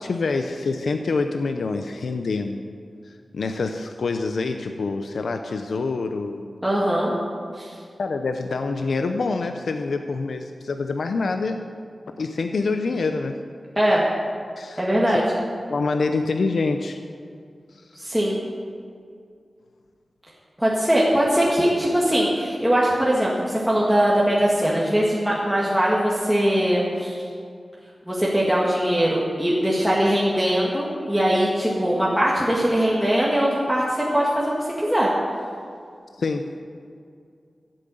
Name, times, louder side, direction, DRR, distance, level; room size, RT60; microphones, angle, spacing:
voice 1, 0.0-2.6 3.0-6.5 8.0-11.7 12.2-13.4 14.6-15.2 15.7-17.0 17.7-18.0 36.2-36.5, left 3 dB, 85° left, 6 dB, 0.6 m, -26 dB
voice 2, 6.6-7.1 7.5-7.7 13.8-14.1 14.8-15.2 18.0-18.4 20.6-27.2 28.1-35.1, equal, ahead, -6 dB, 1.9 m, -21 dB
13.0 x 7.8 x 7.8 m, 2.3 s
wide cardioid pair, 100°, 0 cm